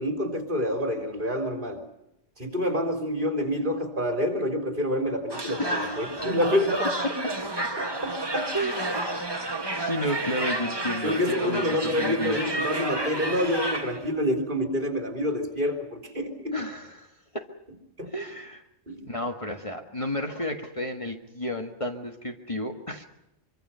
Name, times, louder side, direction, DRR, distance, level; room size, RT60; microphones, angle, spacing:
voice 1, 0.0-1.8 2.4-6.9 7.8-8.5 11.0-16.6 18.0-18.1 18.9-19.1, equal, 45° right, 4 dB, 3.8 m, -27 dB
sound 1, 5.3-14.1, right 1 dB, 20° right, 1.9 m, -31 dB
voice 2, 5.6-6.2 8.5-12.5 16.5-17.5 18.1-18.6 19.0-23.0, equal, 30° left, 4 dB, 1.7 m, -32 dB
24.5 x 24.5 x 5.7 m, 0.85 s
omnidirectional pair, 1.2 m